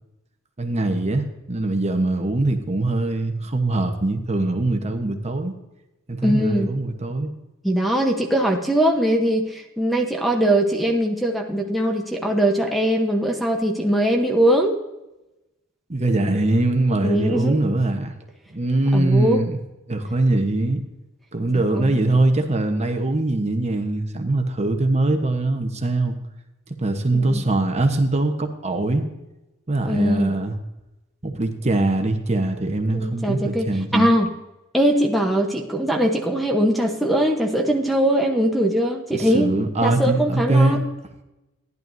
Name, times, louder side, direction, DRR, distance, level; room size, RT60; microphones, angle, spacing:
voice 1, 0.6-5.5 6.1-7.3 15.9-18.1 18.5-19.6 19.9-20.8 21.3-26.2 26.8-29.0 29.7-30.6 31.2-34.1 39.1-40.8, right 2 dB, 30° right, 5 dB, 1.0 m, -22 dB
voice 2, 6.2-6.7 7.6-14.7 17.0-17.6 18.9-19.4 21.7-22.2 27.1-27.4 29.9-30.3 32.9-34.3 34.7-39.6 39.8-40.8, right 1 dB, ahead, 2 dB, 0.9 m, -21 dB
14.5 x 11.0 x 2.7 m, 0.98 s
head